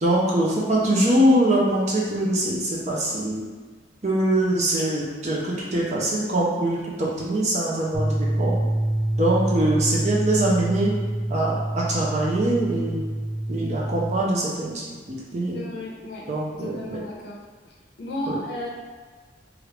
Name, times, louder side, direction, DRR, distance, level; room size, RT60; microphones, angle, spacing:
voice 1, 0.0-3.4 4.0-8.6 9.2-10.9 11.3-13.0 13.5-14.8 15.1-15.7 16.3-17.0 18.3-18.4, right 1 dB, 40° right, -4 dB, 0.5 m, -23 dB
sound 1, 7.9-14.2, right 1 dB, 15° left, 0.7 m, -26 dB
voice 2, 15.5-16.3 16.5-17.4 18.0-18.7, left 1 dB, 65° left, -3 dB, 0.6 m, -33 dB
3.2 x 2.5 x 3.2 m, 1.4 s
head